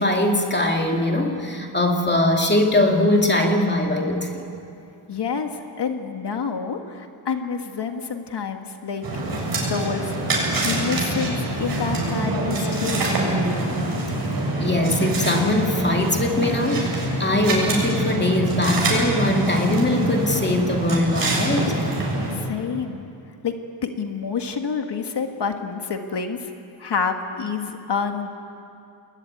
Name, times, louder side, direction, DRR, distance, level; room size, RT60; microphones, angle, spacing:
voice 1, 0.0-4.4 14.6-21.7, left 1 dB, 20° left, 2 dB, 2.4 m, -21 dB
voice 2, 5.1-9.0 9.7-10.1 10.7-13.1 22.3-23.0 23.4-23.5 23.8-26.5 26.8-28.4, left 6 dB, 60° left, 5 dB, 1.8 m, -28 dB
sound 1, 9.0-22.3, right 1 dB, 50° right, 7.4 m, -25 dB
30.0 x 21.0 x 9.5 m, 2.7 s
wide cardioid pair, 155°, 46 cm